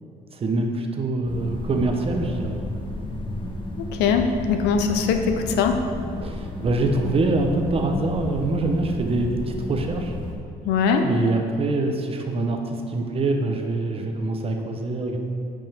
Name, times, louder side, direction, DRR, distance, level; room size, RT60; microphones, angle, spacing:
voice 1, 0.3-2.6 6.2-10.2 11.0-15.2, right 2 dB, 35° right, 3 dB, 0.8 m, -25 dB
sound 1, 1.3-10.4, left 1 dB, 30° left, 1.1 m, -32 dB
voice 2, 3.8-5.8 10.6-11.1, left 6 dB, 85° left, 6 dB, 0.7 m, -21 dB
9.1 x 5.3 x 3.5 m, 2.4 s
cardioid pair, 110°, 17 cm